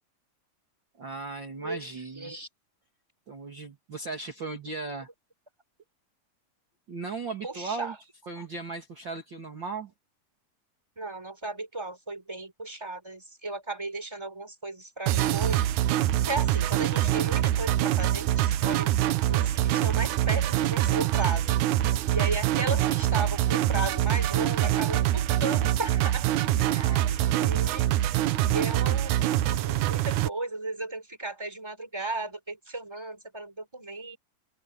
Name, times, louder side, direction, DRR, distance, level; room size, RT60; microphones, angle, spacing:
voice 1, 1.0-2.3 3.3-5.1 6.9-7.9 8.3-9.9 26.3-27.4, right 4 dB, 35° right, 3.1 m, -37 dB
voice 2, 1.6-2.5 7.4-8.0 8.4-8.5 11.0-18.9 19.3-21.4 22.1-26.3 26.7-27.0 27.4-27.9 28.4-34.2, right 2 dB, 10° right, 4.6 m, -35 dB
sound 1, 15.1-30.3, right 13 dB, 75° right, 2.2 m, -25 dB
open air
omnidirectional pair, 3.7 m